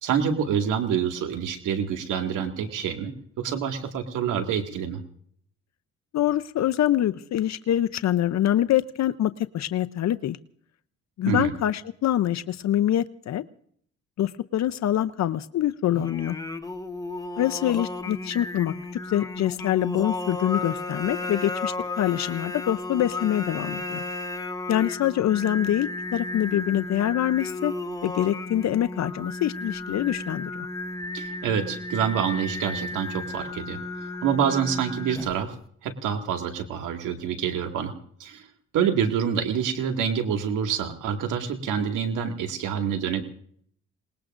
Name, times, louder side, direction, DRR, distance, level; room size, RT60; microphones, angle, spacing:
voice 1, 0.0-5.0 11.3-11.5 31.1-35.5 35.8-37.9 38.2-38.5 38.7-43.2, right 7 dB, 85° right, 4 dB, 2.2 m, -27 dB
voice 2, 6.1-10.4 11.2-13.4 14.2-16.4 17.4-18.7 19.1-24.0 24.7-27.7 28.0-30.7, left 12 dB, 60° left, 11 dB, 0.7 m, -25 dB
Singing, 15.9-35.5, left 2 dB, 10° left, 1.1 m, -34 dB
27.5 x 20.0 x 2.6 m, 0.62 s
cardioid pair, 90°, 30 cm